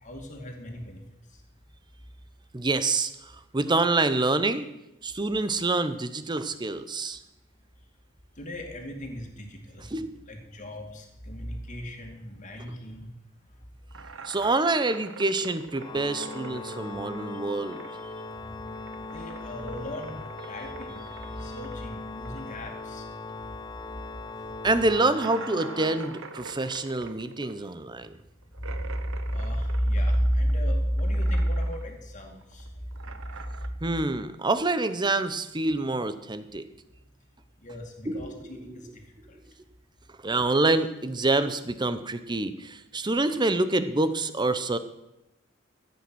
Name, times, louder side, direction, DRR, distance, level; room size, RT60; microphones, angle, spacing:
voice 1, 0.0-1.0 8.4-9.9 10.3-13.1 19.0-20.2 20.5-21.0 21.3-23.0 28.7-29.0 29.3-32.7 37.6-38.9, equal, 40° left, 2 dB, 2.4 m, -31 dB
voice 2, 2.5-4.7 5.0-7.2 9.9-10.2 14.2-17.8 24.6-28.2 33.8-36.6 38.1-38.5 40.2-44.8, right 2 dB, 20° right, 12 dB, 0.8 m, -26 dB
sound 1, 13.9-18.2 18.5-23.5 23.8-23.9 24.3-24.4 25.1-30.7 31.0-31.9 32.2-33.7, right 5 dB, 75° right, 1.0 m, -45 dB
Organ, 15.8-26.7, left 3 dB, 20° left, 0.5 m, -40 dB
14.5 x 8.5 x 6.3 m, 0.90 s
head